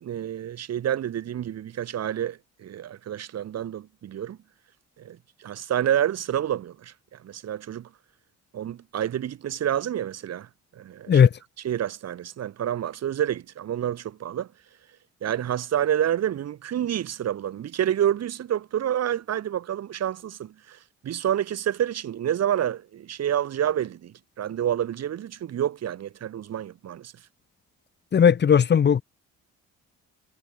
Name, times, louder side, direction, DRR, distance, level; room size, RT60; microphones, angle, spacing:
voice 1, 0.0-4.4 5.0-7.9 8.5-11.2 11.6-14.5 15.2-27.1, right 10 dB, 55° right, 1.2 m, -28 dB
voice 2, 28.1-29.0, left 7 dB, 35° left, 0.8 m, -17 dB
cardioid pair, 90°, 30 cm